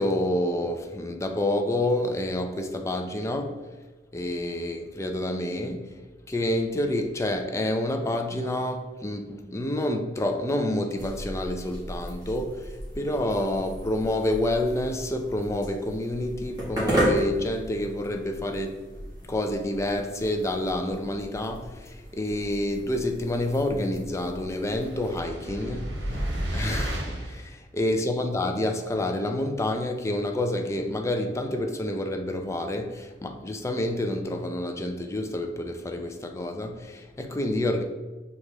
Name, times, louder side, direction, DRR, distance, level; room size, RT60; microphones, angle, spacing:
voice 1, 0.0-3.6 4.1-5.9 6.3-18.8 19.3-25.9 26.5-37.8, left 1 dB, 15° left, 0.3 m, -28 dB
sound 1, 11.0-25.2, equal, 20° right, 1.3 m, -35 dB
sound 2, 24.8-27.4, right 1 dB, 85° right, 0.9 m, -32 dB
6.4 x 2.3 x 3.1 m
head